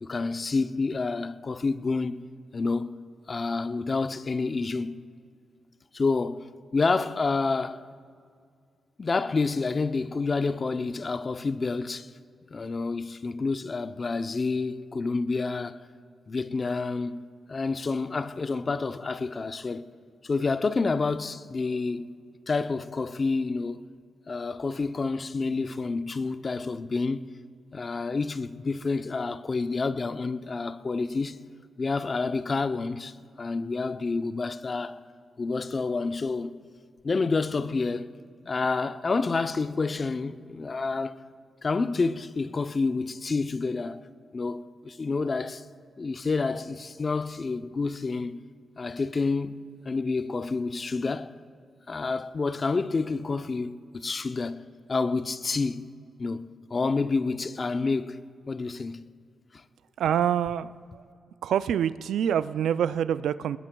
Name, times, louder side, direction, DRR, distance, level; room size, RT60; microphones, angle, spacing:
voice 1, 0.0-2.2 2.5-2.9 3.3-5.0 5.9-7.8 9.0-12.1 12.5-15.9 16.3-19.9 20.2-22.1 22.5-23.8 24.3-27.3 27.7-31.4 31.8-35.0 35.4-36.6 37.0-38.1 38.5-41.2 41.6-44.0 44.3-45.6 46.0-48.4 48.8-51.3 51.9-54.6 54.9-55.8 56.2-58.2 58.5-59.1 59.5-59.6, left 4 dB, 40° left, 0.6 m, -29 dB
voice 2, 60.0-61.0 61.4-63.6, right 9 dB, 85° right, 0.3 m, -26 dB
21.5 x 20.5 x 2.3 m
cardioid pair, 75°, 0 cm